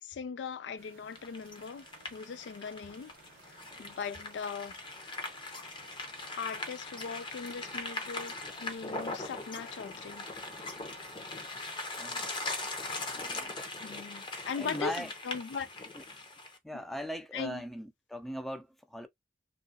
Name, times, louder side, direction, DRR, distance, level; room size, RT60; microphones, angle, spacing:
voice 1, 0.0-3.1 3.8-4.7 6.4-10.3 13.8-15.7 17.3-17.6, left 5 dB, 85° left, 0.4 m, -39 dB
sound 1, 0.8-13.5, right 5 dB, 55° right, 0.7 m, -59 dB
sound 2, 1.1-16.6, left 2 dB, 30° left, 0.7 m, -40 dB
voice 2, 12.0-12.3 13.1-13.6 14.6-15.1 16.6-19.1, equal, ahead, 0.4 m, -40 dB
2.8 x 2.4 x 2.7 m
head